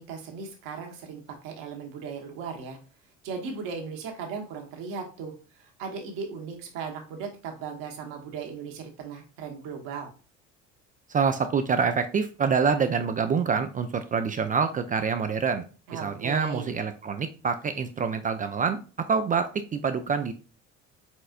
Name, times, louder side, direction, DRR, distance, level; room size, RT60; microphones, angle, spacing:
voice 1, 0.0-2.8 3.2-10.1 15.9-16.7, right 5 dB, 65° right, 3 dB, 1.2 m, -37 dB
voice 2, 11.1-15.7 15.9-20.3, right 5 dB, 25° right, 9 dB, 0.3 m, -26 dB
4.3 x 4.1 x 2.4 m, 0.36 s
figure-of-eight pair, 55°, 37 cm